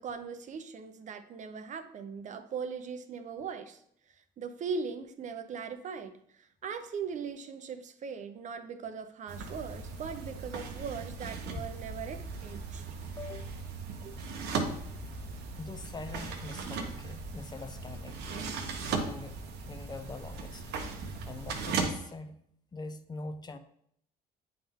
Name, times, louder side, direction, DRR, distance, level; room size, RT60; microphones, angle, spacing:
voice 1, 0.0-3.8 4.4-12.8 14.0-14.2, right 6 dB, 45° right, 9 dB, 0.6 m, -39 dB
sound 1, 9.3-21.9, right 4 dB, 75° right, 1.0 m, -38 dB
voice 2, 13.2-13.6 15.6-18.2 18.9-19.4 19.7-20.6 21.3-22.4 22.7-23.6, left 3 dB, 25° left, 8 dB, 0.5 m, -43 dB
8.7 x 3.6 x 3.5 m, 0.70 s
cardioid pair, 110°, 17 cm